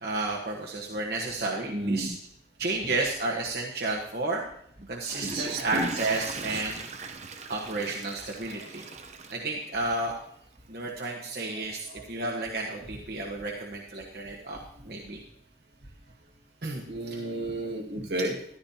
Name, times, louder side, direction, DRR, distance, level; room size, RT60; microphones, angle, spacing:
voice 1, 0.0-2.1 2.6-4.4 4.9-6.8 7.5-8.8 9.3-10.1 10.7-14.6 14.9-15.2 16.6-16.8, right 2 dB, 60° right, -2 dB, 1.3 m, -31 dB
voice 2, 1.7-2.1 5.2-5.9 6.4-6.6 11.5-12.0 16.9-18.6, right 1 dB, 85° right, 0 dB, 2.0 m, -33 dB
Water / Toilet flush, 4.8-10.1 10.6-10.7, right 4 dB, 40° right, 0.8 m, -39 dB
14.0 x 11.5 x 2.9 m, 0.68 s
head